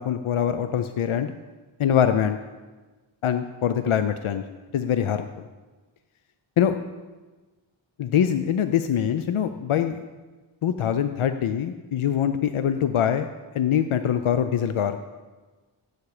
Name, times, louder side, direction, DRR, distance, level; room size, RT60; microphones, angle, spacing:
voice 1, 0.0-1.3 1.8-2.4 3.2-4.4 4.7-5.3 6.6-6.8 8.0-10.0 10.6-13.3 13.5-15.0, left 9 dB, 75° left, 10 dB, 0.7 m, -23 dB
15.5 x 8.3 x 4.9 m, 1.3 s
wide cardioid pair, 95°, 50 cm